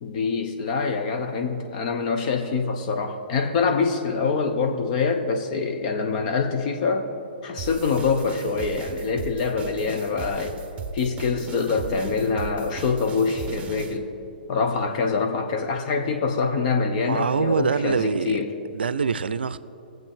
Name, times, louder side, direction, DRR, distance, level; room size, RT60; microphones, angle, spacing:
voice 1, 0.0-7.1 7.4-10.6 10.9-14.1 14.5-18.5, left 4 dB, 45° left, 5 dB, 1.0 m, -25 dB
sound 1, 7.6-14.0, right 4 dB, 25° right, 0.9 m, -37 dB
voice 2, 17.0-18.4 18.7-19.6, right 5 dB, 75° right, 15 dB, 0.5 m, -24 dB
20.5 x 7.7 x 3.7 m, 2.8 s
figure-of-eight pair, 120°, 5 cm